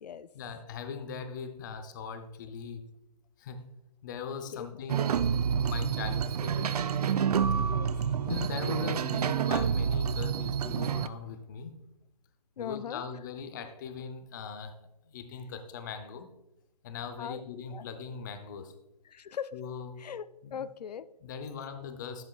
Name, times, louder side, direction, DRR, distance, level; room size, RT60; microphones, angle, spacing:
voice 1, 0.3-2.9 3.4-3.6 4.0-7.1 8.2-11.7 12.6-14.7 15.1-16.3 16.8-18.7 19.5-20.0 20.4-20.6 21.2-22.2, left 6 dB, 30° left, 0.6 m, -40 dB
sound 1, 4.9-11.1, right 7 dB, 70° right, 0.5 m, -28 dB
voice 2, 7.6-7.9 12.6-13.0 17.2-17.4 17.7-17.9 19.1-19.5 20.0-20.2 20.5-21.1, left 8 dB, 80° left, 0.4 m, -39 dB
11.0 x 7.3 x 2.3 m
hypercardioid pair, 155°, 20 cm